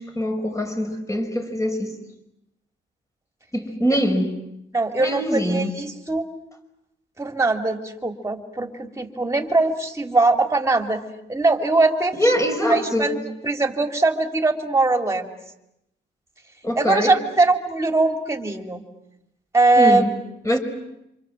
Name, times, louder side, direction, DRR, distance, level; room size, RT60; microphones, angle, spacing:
voice 1, 0.0-1.9 3.5-4.3 5.0-5.7 12.1-13.2 16.6-17.1 19.8-20.1 20.5-20.6, equal, 15° left, 5 dB, 5.4 m, -23 dB
voice 2, 4.7-6.2 7.2-11.0 11.3-12.3 12.6-15.3 16.8-18.8 19.5-20.0, right 3 dB, 15° right, 6 dB, 3.4 m, -21 dB
28.0 x 27.0 x 7.7 m, 0.85 s
cardioid pair, 90°, 20 cm